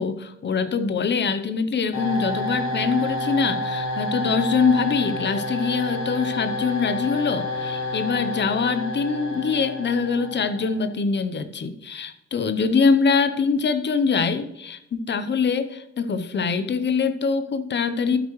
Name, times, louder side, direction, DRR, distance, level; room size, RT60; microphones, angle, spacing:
voice 1, 0.0-18.2, left 5 dB, 35° left, 11 dB, 0.7 m, -23 dB
sound 1, 1.9-10.8, left 1 dB, 65° left, 3.4 m, -29 dB
12.0 x 9.0 x 3.1 m, 0.86 s
wide cardioid pair, 150°, 30 cm